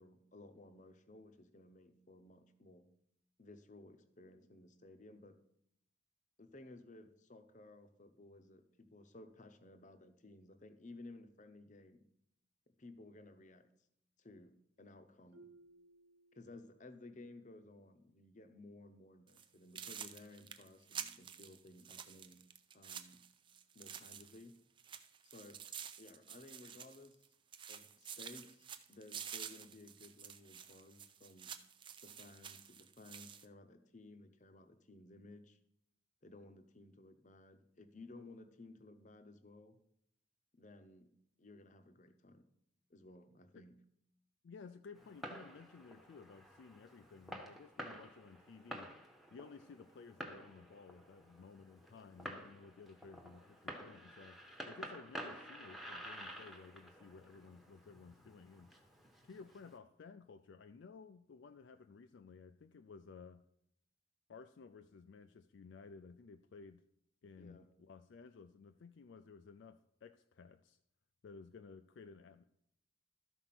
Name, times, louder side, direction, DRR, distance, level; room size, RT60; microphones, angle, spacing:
voice 1, 0.0-2.9 3.4-5.4 6.4-12.1 12.7-13.7 14.2-15.5 16.3-22.4 22.7-23.2 23.7-24.6 25.2-25.6 26.0-27.2 27.7-31.6 32.0-35.6 36.2-39.8 40.5-42.5 42.9-43.8 67.4-67.7, left 2 dB, 35° left, 9 dB, 0.7 m, -57 dB
Marimba xylophone, 15.3-17.1, right 2 dB, 45° right, 1.0 m, -63 dB
sound 1, 19.3-19.5 19.8-24.5 24.8-27.3 27.5-33.5, right 8 dB, 25° right, 0.4 m, -50 dB
voice 2, 44.4-48.9 49.3-58.7 59.2-63.4 64.3-66.8 67.2-70.8 71.2-72.4, left 5 dB, 60° left, 8 dB, 0.4 m, -56 dB
Fireworks, 44.9-59.8, equal, ahead, 0.9 m, -51 dB
13.0 x 4.5 x 5.9 m, 0.76 s
head